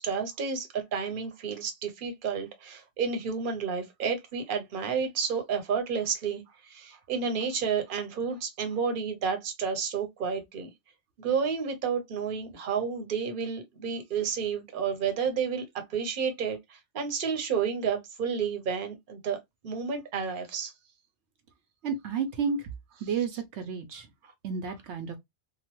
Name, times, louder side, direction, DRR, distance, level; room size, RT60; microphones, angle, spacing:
voice 1, 0.0-10.7 11.2-19.4 19.6-20.7, right 6 dB, 50° right, 0.9 m, -31 dB
voice 2, 21.8-22.7 23.0-24.1 24.4-25.2, right 6 dB, 80° right, 0.9 m, -31 dB
3.0 x 2.2 x 2.9 m
omnidirectional pair, 1.2 m